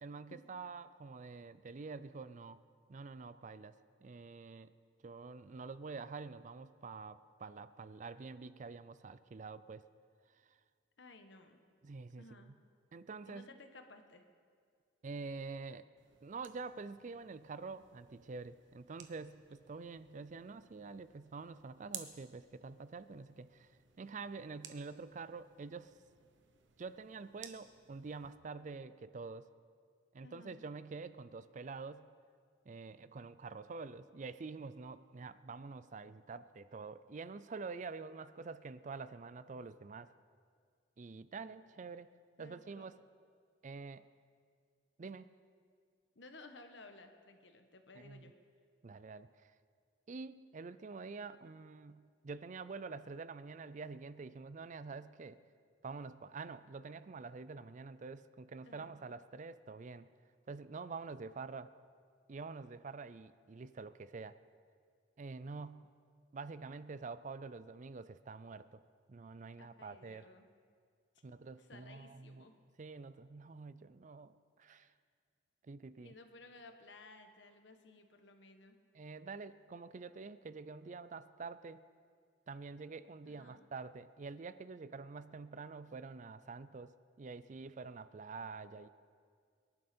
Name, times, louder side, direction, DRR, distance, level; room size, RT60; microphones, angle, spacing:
voice 1, 0.0-2.6 2.9-3.7 4.0-4.7 5.0-9.8 10.5-10.6 11.8-12.5 12.9-13.4 15.0-15.9 16.2-23.7 24.0-25.9 26.8-29.5 30.1-32.1 32.7-40.1 41.0-42.1 42.4-43.0 43.6-44.1 45.0-45.3 48.0-48.3 48.8-49.5 50.1-55.4 55.8-60.1 60.5-61.7 62.3-64.4 65.2-65.9 66.3-68.8 69.1-70.3 71.2-72.4 72.8-74.9 75.6-76.1 78.9-81.8 82.5-88.9, right 4 dB, 40° right, 14 dB, 0.4 m, -47 dB
voice 2, 11.0-11.6 12.2-12.5 13.2-14.2 30.2-30.6 42.4-42.9 46.1-48.3 58.6-59.0 69.6-70.5 71.6-72.5 74.6-74.9 76.0-78.8 83.2-83.6, left 2 dB, 70° left, 6 dB, 1.3 m, -57 dB
sound 1, 16.0-28.4, right 9 dB, 80° right, 1.1 m, -57 dB
23.5 x 11.0 x 4.4 m, 2.1 s
head